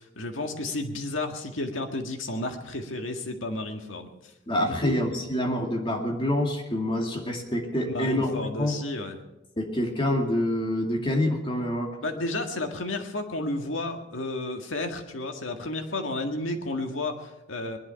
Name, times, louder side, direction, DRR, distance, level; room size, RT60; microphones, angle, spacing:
voice 1, 0.0-4.1 4.6-5.0 7.8-9.2 12.0-17.8, left 2 dB, 85° left, 4 dB, 1.9 m, -32 dB
voice 2, 4.5-8.8 9.6-12.0, left 1 dB, 25° left, 1 dB, 2.3 m, -27 dB
20.5 x 11.5 x 5.8 m, 0.91 s
head